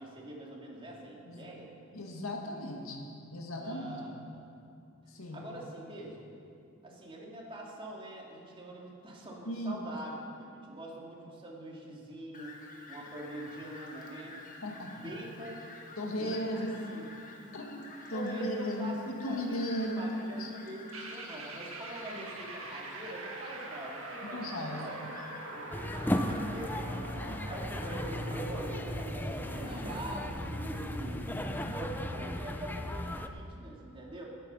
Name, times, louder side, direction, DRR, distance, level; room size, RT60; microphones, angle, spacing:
voice 1, 0.0-1.7 3.6-4.5 5.3-6.2 6.8-12.5 12.9-14.4 14.9-15.6 16.1-17.0 18.1-19.0 19.2-19.6 20.0-24.4 24.7-25.0 25.5-25.6 26.1-34.2, right 1 dB, 25° right, -3 dB, 2.7 m, -44 dB
voice 2, 1.9-4.0 5.1-5.4 9.4-9.8 14.6-15.3 16.0-17.0 17.5-20.1 20.4-20.5 24.3-25.1, equal, 80° left, 1 dB, 2.1 m, -36 dB
Fowl, 12.3-31.8, left 2 dB, 40° left, 1.5 m, -51 dB
sound 1, 20.9-33.0, right 1 dB, 80° right, 1.8 m, -44 dB
sound 2, 25.7-33.3, left 1 dB, 10° left, 0.6 m, -36 dB
19.5 x 9.1 x 5.6 m, 2.5 s
head